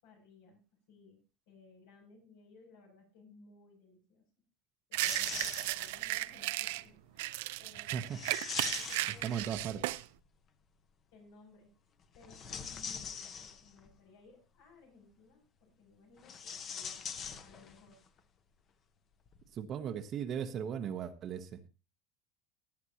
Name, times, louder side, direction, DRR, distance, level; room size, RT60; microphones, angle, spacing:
voice 1, 0.0-0.6 0.9-4.2 4.9-8.3 8.7-9.8 11.1-11.7 12.1-18.0, left 3 dB, 80° left, 2 dB, 7.3 m, -60 dB
sound 1, 4.9-6.8 7.2-10.0, right 18 dB, 80° right, 0.5 m, -35 dB
sound 2, 5.0-6.1 8.1-9.9 12.1-13.9 16.2-17.9 18.2-18.3 19.3-19.4, left 7 dB, 30° left, 1.0 m, -43 dB
voice 2, 9.2-9.8 19.5-21.6, right 8 dB, 35° right, 9 dB, 0.9 m, -37 dB
17.5 x 9.6 x 2.9 m, 0.30 s
supercardioid pair, 155°, 0 cm